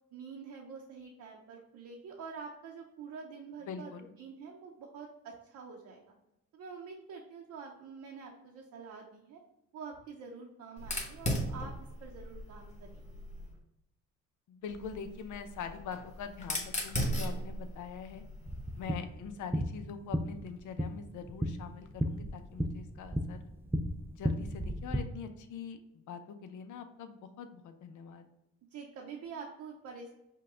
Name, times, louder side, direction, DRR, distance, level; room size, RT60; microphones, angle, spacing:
voice 1, 0.1-6.1 6.5-9.4 9.7-11.7 12.0-13.2 28.7-30.1, right 5 dB, 75° right, -1 dB, 0.8 m, -47 dB
voice 2, 3.7-4.1 14.5-18.2 18.8-23.4 24.1-28.3, left 6 dB, 80° left, 8 dB, 0.6 m, -43 dB
Fire, 10.8-13.5 14.7-18.9, equal, 25° left, 1.2 m, -37 dB
sound 1, 18.5-25.0, equal, 10° right, 0.4 m, -35 dB
5.6 x 2.3 x 3.6 m, 0.89 s
cardioid pair, 90°, 30 cm